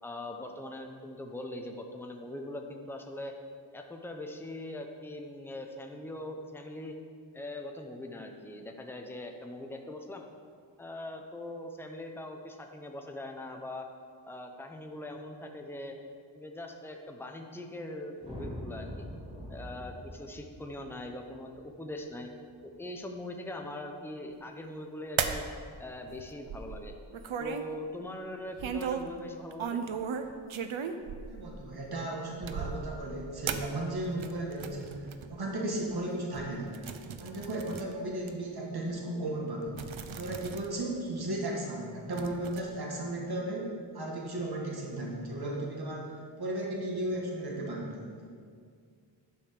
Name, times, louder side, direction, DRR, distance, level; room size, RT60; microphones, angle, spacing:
voice 1, 0.0-3.4 3.7-6.9 7.3-10.3 10.8-13.9 14.3-15.9 16.3-19.1 19.5-22.3 22.6-25.4 25.8-26.9 27.4-29.8, left 1 dB, 5° left, 3 dB, 0.8 m, -41 dB
sound 1, 18.2-22.6, equal, 10° right, 2.4 m, -44 dB
sound 2, 25.2-25.5 26.1-27.7 28.6-29.1 29.5-31.7 32.4-33.0 33.5-35.3 35.9-36.0 36.3-37.9 38.3-38.4 39.3-39.4 39.7-40.7 41.0-41.1 42.1-42.6, right 6 dB, 85° right, 0.7 m, -36 dB
voice 2, 31.3-36.8 37.2-39.8 40.1-46.1 46.4-48.1, right 1 dB, 50° right, -2 dB, 1.8 m, -35 dB
11.0 x 5.3 x 6.7 m, 2.1 s
wide cardioid pair, 115°, 46 cm